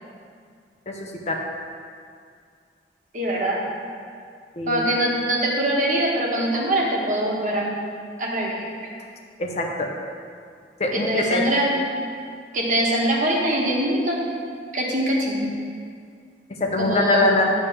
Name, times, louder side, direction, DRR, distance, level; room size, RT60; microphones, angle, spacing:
voice 1, 0.9-1.4 4.6-4.9 9.4-9.9 10.8-11.4 16.6-17.4, left 2 dB, 40° left, 1 dB, 0.8 m, -23 dB
voice 2, 3.1-3.6 4.7-7.7 8.2-8.6 10.9-11.7 12.5-14.2 14.7-15.5 16.8-17.4, right 1 dB, 45° right, -3 dB, 1.4 m, -23 dB
10.5 x 3.5 x 6.9 m, 2.2 s
head